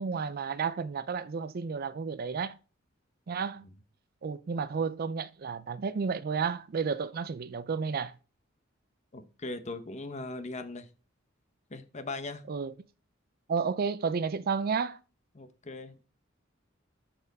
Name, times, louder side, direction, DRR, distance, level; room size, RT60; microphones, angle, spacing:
voice 1, 0.0-2.5 3.3-3.6 4.2-8.1 12.5-12.7 13.5-15.0, right 5 dB, 50° right, 0.4 m, -32 dB
voice 2, 9.1-10.9 11.7-12.4 15.3-16.0, left 2 dB, 35° left, 0.9 m, -39 dB
12.0 x 4.4 x 4.0 m
head